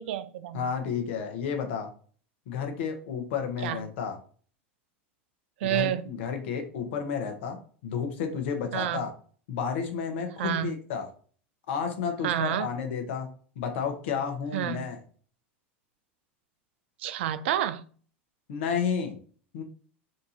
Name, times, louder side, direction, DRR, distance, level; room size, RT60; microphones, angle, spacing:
voice 1, 0.0-0.7 3.6-3.8 5.6-6.1 8.7-9.0 10.4-10.7 12.2-12.7 14.5-14.9 17.0-17.8, right 11 dB, 70° right, 0.4 m, -29 dB
voice 2, 0.5-1.9 2.5-4.2 5.6-9.1 9.5-11.0 11.7-13.3 13.6-15.0 18.5-19.2 19.5-19.6, left 6 dB, 70° left, 1.2 m, -31 dB
4.4 x 2.7 x 4.0 m
hypercardioid pair, 100°, 7 cm